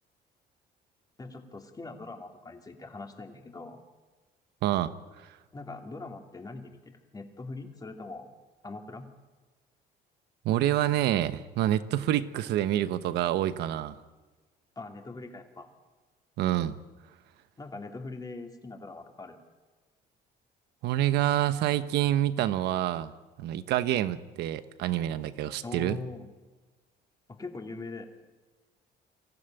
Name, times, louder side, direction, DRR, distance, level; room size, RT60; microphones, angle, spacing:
voice 1, 1.2-3.8 5.5-8.3 8.6-9.1 14.8-15.7 17.6-19.4 25.6-26.3 27.3-28.1, left 3 dB, 20° left, 3 dB, 2.9 m, -42 dB
voice 2, 4.6-4.9 10.4-14.0 16.4-16.7 20.8-23.1 23.4-26.0, right 12 dB, 80° right, 12 dB, 1.1 m, -27 dB
24.5 x 15.0 x 9.1 m, 1.3 s
cardioid pair, 110°, 17 cm